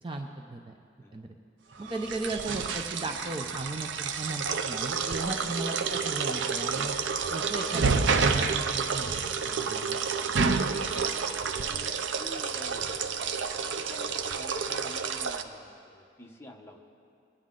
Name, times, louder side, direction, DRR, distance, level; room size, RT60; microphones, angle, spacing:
voice 1, 0.0-0.7 1.1-1.4 1.8-6.9 7.3-10.0, right 2 dB, 30° right, 4 dB, 0.5 m, -36 dB
sound 1, 1.9-15.4, right 5 dB, 85° right, 0.6 m, -29 dB
voice 2, 5.0-5.4 10.4-11.2 11.6-13.0 13.6-16.9, left 1 dB, 15° left, 1 dB, 0.9 m, -48 dB
20.5 x 9.3 x 3.8 m, 2.4 s
head